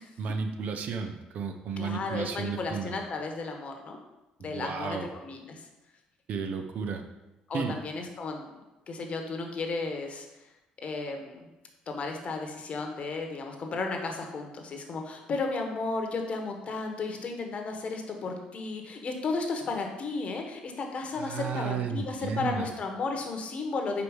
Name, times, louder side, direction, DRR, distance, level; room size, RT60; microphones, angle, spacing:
voice 1, 0.2-3.0 4.4-5.1 6.3-7.0 7.5-7.8 21.2-22.7, right 6 dB, 60° right, 6 dB, 0.7 m, -33 dB
voice 2, 1.8-4.0 4.4-5.6 7.5-8.5 8.9-10.3 10.8-11.5 11.9-24.0, left 3 dB, 50° left, 3 dB, 1.2 m, -34 dB
5.0 x 4.6 x 4.9 m, 1.0 s
supercardioid pair, 70°, 3 cm